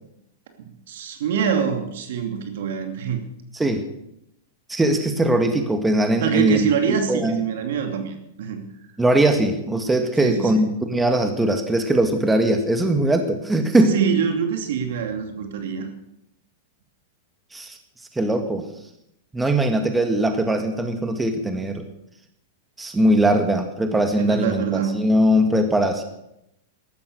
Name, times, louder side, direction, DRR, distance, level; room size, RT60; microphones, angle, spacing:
voice 1, 0.6-3.2 6.2-8.6 10.2-10.6 13.9-15.9 24.2-25.0, right 7 dB, 70° right, 5 dB, 2.8 m, -25 dB
voice 2, 3.5-3.9 4.7-6.7 7.1-7.5 9.0-14.0 17.5-17.8 18.1-18.7 19.3-21.9 22.8-26.0, right 1 dB, 10° right, 6 dB, 1.8 m, -20 dB
14.5 x 12.5 x 6.7 m, 0.81 s
hypercardioid pair, 115°, 0 cm